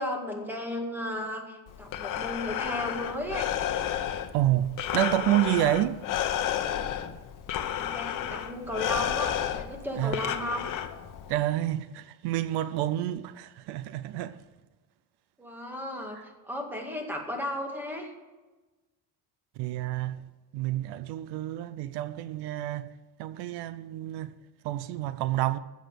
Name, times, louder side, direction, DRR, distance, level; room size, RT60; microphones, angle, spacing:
voice 1, 0.0-3.5 7.7-10.7 15.4-16.2 16.4-18.1, left 1 dB, 5° right, 2.0 m, -34 dB
Breathing, 1.7-11.3, left 10 dB, 50° left, 1.0 m, -32 dB
voice 2, 4.3-6.2 10.0-10.3 11.3-14.4 16.1-16.2 19.5-25.6, right 14 dB, 80° right, 0.7 m, -29 dB
14.0 x 7.1 x 8.2 m
cardioid pair, 160°, 39 cm